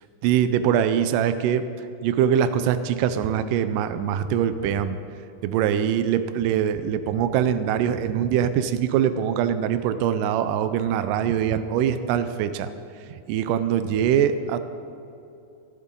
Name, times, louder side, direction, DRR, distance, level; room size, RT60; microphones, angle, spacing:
voice 1, 0.2-1.6 2.0-5.0 5.4-12.7 13.1-14.6, right 9 dB, 85° right, 11 dB, 1.9 m, -23 dB
20.5 x 12.0 x 3.8 m, 2.7 s
omnidirectional pair, 4.5 m